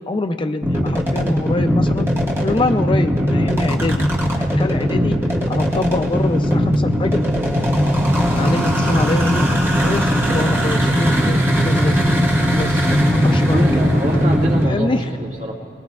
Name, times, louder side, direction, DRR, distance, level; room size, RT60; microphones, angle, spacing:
voice 1, 0.1-2.1 2.4-4.0 4.4-5.2 5.5-7.2 8.3-12.0 12.3-12.8 13.1-13.7 14.6-15.0, left 2 dB, 30° left, 7 dB, 0.4 m, -24 dB
sound 1, 0.6-14.7, equal, 15° right, 1.5 m, -18 dB
voice 2, 13.5-15.5, right 1 dB, 45° right, -3 dB, 2.0 m, -24 dB
21.0 x 20.0 x 2.4 m, 2.4 s
head